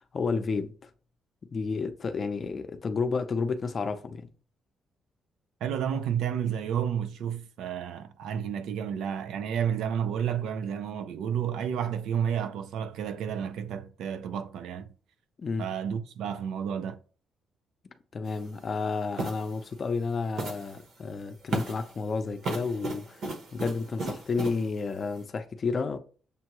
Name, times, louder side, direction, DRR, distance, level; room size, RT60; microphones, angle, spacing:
voice 1, 0.1-0.7 1.5-4.2 15.4-15.7 18.1-23.2 23.5-26.0, left 4 dB, 35° left, 0.5 m, -31 dB
voice 2, 5.6-14.9 15.6-17.0, right 8 dB, 85° right, 0.4 m, -31 dB
sound 1, 18.3-18.4 19.2-19.5 20.4-20.8 21.5-21.9 22.4-24.6, right 3 dB, 60° right, 0.9 m, -34 dB
6.7 x 2.3 x 2.9 m
cardioid pair, 145°, 0 cm